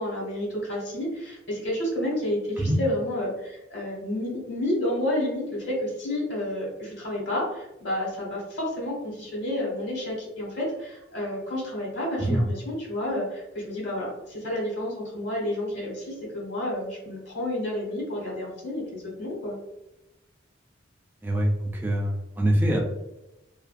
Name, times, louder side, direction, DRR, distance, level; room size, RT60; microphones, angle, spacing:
voice 1, 0.0-19.6, left 1 dB, 70° left, -4 dB, 1.3 m, -30 dB
voice 2, 21.2-22.8, right 1 dB, 10° right, -1 dB, 0.4 m, -24 dB
2.5 x 2.3 x 2.3 m, 0.92 s
head